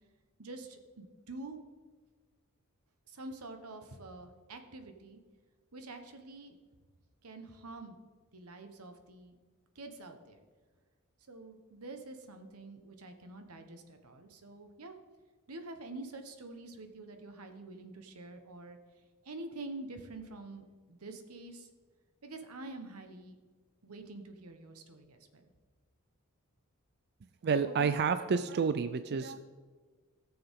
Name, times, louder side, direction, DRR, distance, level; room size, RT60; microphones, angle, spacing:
voice 1, 0.4-1.6 3.1-5.2 5.7-6.6 7.2-8.0 8.3-9.4 9.7-10.4 11.3-14.9 15.5-18.8 19.2-21.7 22.2-23.4 23.8-25.5, right 2 dB, 90° right, 6 dB, 1.2 m, -47 dB
voice 2, 27.4-29.4, right 5 dB, 50° right, 11 dB, 0.4 m, -29 dB
17.5 x 6.9 x 3.7 m, 1.4 s
head